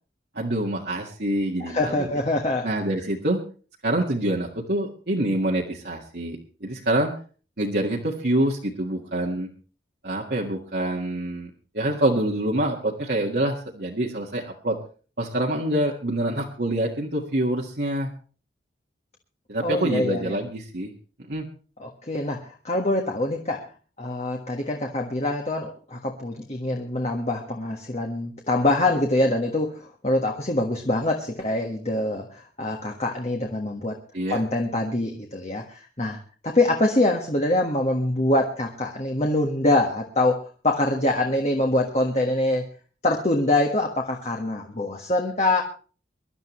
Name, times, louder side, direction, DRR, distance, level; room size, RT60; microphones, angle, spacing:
voice 1, 0.3-2.1 2.6-3.4 3.8-7.2 7.6-9.5 10.0-14.8 15.2-18.1 19.5-20.9 21.3-21.5 34.1-34.4, right 1 dB, 60° right, -2 dB, 1.7 m, -26 dB
voice 2, 1.6-2.7 19.6-20.4 21.8-23.7 24.0-33.9 34.3-36.2 36.4-42.7 43.0-45.6, left 2 dB, 35° left, 2 dB, 1.5 m, -24 dB
24.0 x 12.0 x 3.1 m, 0.38 s
head